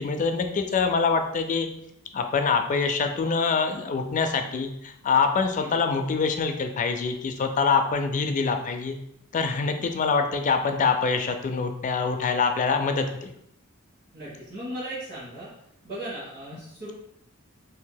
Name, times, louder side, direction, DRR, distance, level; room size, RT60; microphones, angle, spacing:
voice 1, 0.0-1.7 2.1-9.0 9.3-13.3, left 5 dB, 35° left, 6 dB, 0.3 m, -25 dB
voice 2, 14.1-15.5 15.8-16.9, right 1 dB, 40° right, -11 dB, 1.2 m, -37 dB
2.7 x 2.7 x 3.8 m, 0.76 s
head